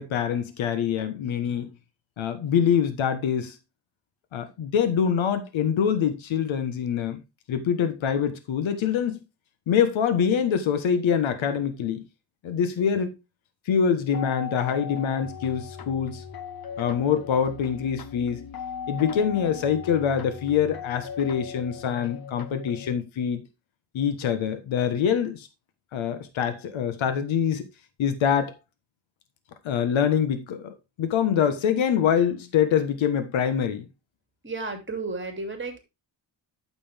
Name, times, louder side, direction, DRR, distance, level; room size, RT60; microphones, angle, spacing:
voice 1, 0.0-1.7 2.2-3.6 4.3-7.2 7.5-9.2 9.7-12.1 12.4-13.1 13.7-16.2 16.8-18.5 18.9-23.5 23.9-25.5 25.9-27.6 28.0-28.6 29.6-33.9, left 8 dB, 85° left, 1.4 m, -25 dB
sound 1, 14.1-22.9, left 7 dB, 50° left, 1.1 m, -38 dB
voice 2, 34.4-35.8, right 3 dB, 25° right, 2.8 m, -32 dB
9.0 x 7.0 x 3.5 m
cardioid pair, 100°, 46 cm